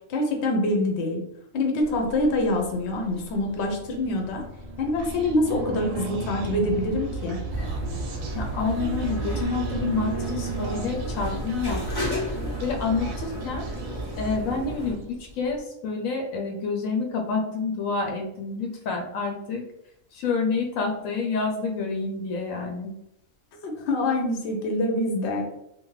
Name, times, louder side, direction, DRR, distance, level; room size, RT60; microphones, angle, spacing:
voice 1, 0.1-1.2 1.5-4.4 4.8-7.4 23.6-25.5, left 1 dB, 60° left, 2 dB, 0.8 m, -25 dB
sound 1, 1.8-15.6, right 3 dB, 60° right, 0.7 m, -38 dB
Human voice, 5.0-14.5, right 4 dB, 85° right, 1.0 m, -38 dB
sound 2, 7.5-14.9, right 1 dB, 25° left, 0.6 m, -32 dB
voice 2, 8.3-12.2 12.6-13.7 14.2-19.6 20.1-22.9, left 4 dB, 80° left, 2 dB, 1.0 m, -28 dB
2.6 x 2.2 x 3.0 m, 0.78 s
omnidirectional pair, 1.4 m